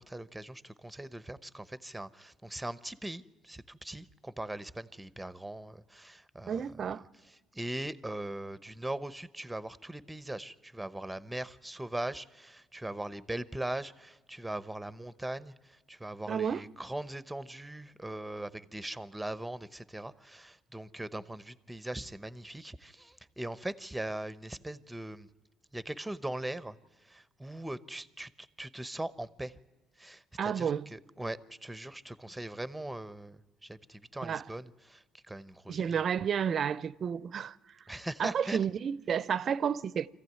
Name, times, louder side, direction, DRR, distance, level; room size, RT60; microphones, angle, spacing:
voice 1, 0.0-7.0 7.2-25.3 25.7-29.6 30.0-35.9 37.9-38.6, right 1 dB, 5° right, 0.9 m, -40 dB
voice 2, 6.5-7.0 16.3-16.6 30.4-30.9 34.2-34.4 35.7-37.6 38.2-40.1, right 7 dB, 50° right, 0.6 m, -31 dB
25.0 x 15.0 x 9.4 m
cardioid pair, 100°, 0 cm